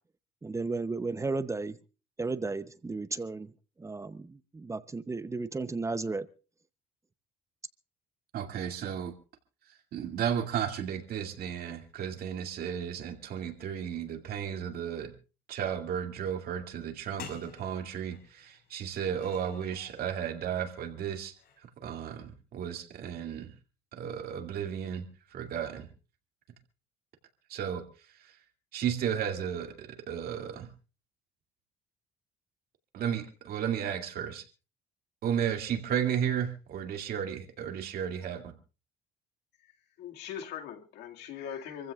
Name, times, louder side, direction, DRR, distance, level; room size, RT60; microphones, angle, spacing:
voice 1, 0.4-1.8 2.2-3.5 3.8-6.3, right 3 dB, 15° right, 0.7 m, -34 dB
voice 2, 8.3-9.1 9.9-15.1 15.5-21.3 21.6-23.5 23.9-25.9 27.5-27.8 28.2-28.4 28.7-30.7 32.9-34.5 35.2-38.5, right 8 dB, 65° right, 2.4 m, -34 dB
sound 1, 16.9-17.0 17.2-20.0 21.3-21.7, left 7 dB, 65° left, 5.0 m, -50 dB
voice 3, 40.0-41.9, left 8 dB, 85° left, 2.1 m, -41 dB
27.5 x 15.0 x 2.4 m
cardioid pair, 110°, 17 cm